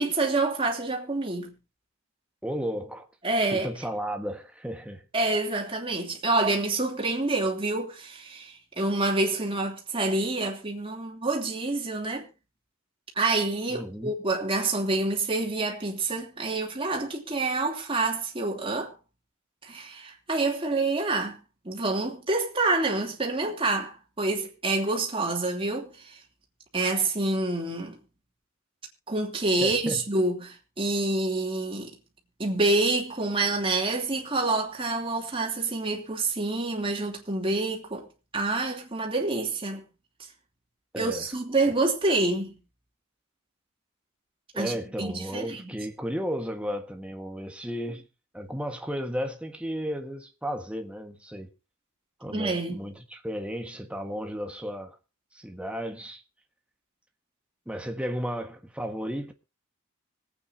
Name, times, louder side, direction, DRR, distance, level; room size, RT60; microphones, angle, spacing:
voice 1, 0.0-1.5 3.2-3.7 5.1-12.3 13.2-18.9 19.6-21.4 21.6-26.2 26.7-28.0 29.1-32.0 32.4-38.0 38.3-39.8 40.9-42.6 44.5-44.7 45.0-45.7 52.3-52.8, right 2 dB, 25° right, 3.0 m, -27 dB
voice 2, 2.4-3.1 3.5-5.0 13.7-14.1 29.6-30.0 40.9-41.3 44.5-48.1 48.3-51.5 52.2-55.0 55.3-56.2 57.6-59.3, equal, 5° right, 1.5 m, -34 dB
25.5 x 8.9 x 2.8 m
head